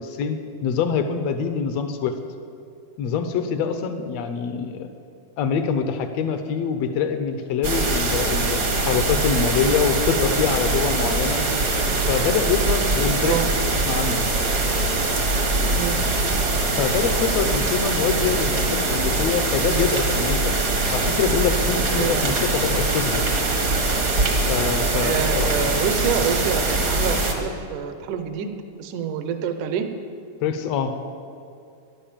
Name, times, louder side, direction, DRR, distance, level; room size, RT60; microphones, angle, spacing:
voice 1, 0.0-2.1 3.0-4.9 5.4-11.4 12.1-14.2 16.7-20.5 20.9-23.3 24.5-25.7 30.4-30.9, left 6 dB, 75° left, 8 dB, 1.5 m, -25 dB
sound 1, 7.6-27.3, right 2 dB, 50° right, 1.0 m, -22 dB
voice 2, 21.9-22.4 25.0-28.5 28.8-29.9, right 7 dB, 70° right, 8 dB, 2.3 m, -27 dB
14.0 x 11.0 x 7.5 m, 2.4 s
omnidirectional pair, 4.0 m